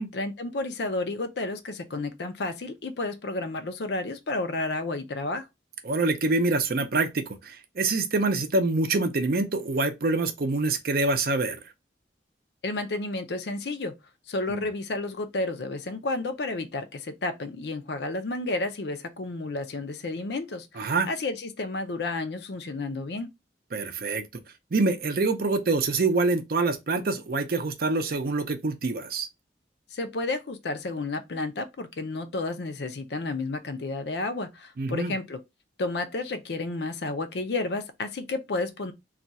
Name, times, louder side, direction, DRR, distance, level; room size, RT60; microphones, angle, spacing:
voice 1, 0.0-5.4 12.6-14.0 14.3-23.3 29.9-35.4 35.8-38.9, left 2 dB, 70° left, 0.5 m, -31 dB
voice 2, 5.8-11.6 14.5-14.6 20.8-21.1 23.7-24.3 24.7-29.3 34.8-35.1, right 3 dB, 55° right, 0.5 m, -25 dB
2.4 x 2.3 x 4.0 m
head